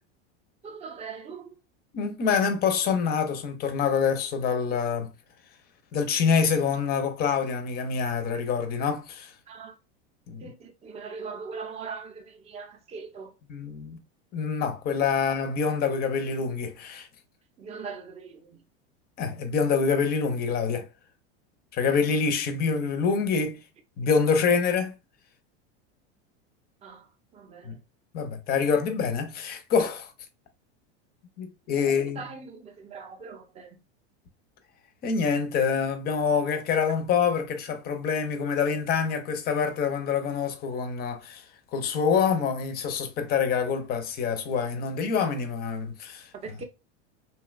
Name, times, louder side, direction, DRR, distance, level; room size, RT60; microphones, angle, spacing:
voice 1, 0.6-1.6 9.5-9.7 10.4-13.3 15.0-15.1 17.6-18.6 26.8-27.1 27.3-27.7 31.8-33.8 46.4-46.6, right 5 dB, 20° right, 0.5 m, -41 dB
voice 2, 1.9-5.1 5.9-9.3 10.3-10.4 13.5-14.0 14.3-17.1 19.2-20.9 21.7-23.6 24.0-24.9 27.6-27.8 28.1-30.1 31.4-32.3 35.0-41.4 41.7-46.6, left 6 dB, 30° left, 0.5 m, -26 dB
2.7 x 2.2 x 2.3 m
supercardioid pair, 125°, 34 cm